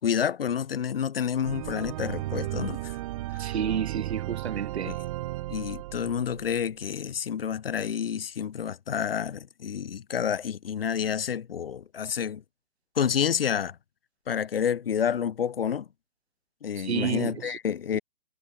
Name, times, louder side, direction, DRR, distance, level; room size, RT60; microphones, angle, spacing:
voice 1, 0.0-3.0 3.3-3.5 4.9-5.0 5.5-12.4 12.9-13.8 14.3-15.9 16.6-18.0, left 8 dB, 65° left, 2.8 m, -29 dB
sound 1, 1.4-6.6, right 16 dB, 35° right, 4.2 m, -34 dB
voice 2, 3.4-5.0 16.8-17.6 17.9-18.0, right 8 dB, 85° right, 1.0 m, -30 dB
hypercardioid pair, 160°, 31 cm